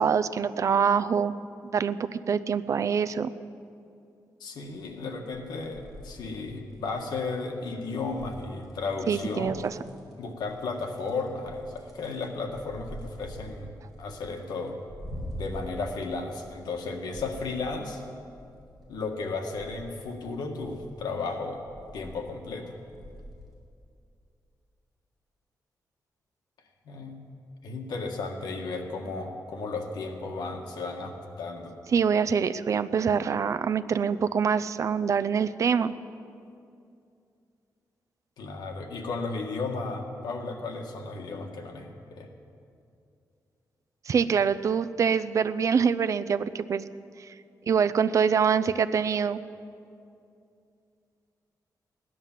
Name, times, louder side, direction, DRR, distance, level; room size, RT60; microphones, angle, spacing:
voice 1, 0.0-1.3 1.7-3.3 9.1-9.7 31.9-35.9 44.1-46.8 47.7-49.4, right 6 dB, 50° right, 13 dB, 0.5 m, -25 dB
voice 2, 4.4-9.6 10.2-14.8 15.3-18.0 18.9-21.6 21.9-22.7 26.8-27.2 27.6-31.7 38.4-42.3, left 3 dB, 85° left, 3 dB, 1.7 m, -34 dB
sound 1, 5.0-5.1 5.3-7.2 8.0-8.7 9.1-10.1 10.4-16.8 17.1-18.8 19.3-20.0 20.6-21.1 21.5-22.5 22.8-23.4 23.9-24.0, equal, ahead, 4.7 m, -45 dB
17.0 x 11.0 x 7.4 m, 2.5 s
wide cardioid pair, 140°, 7 cm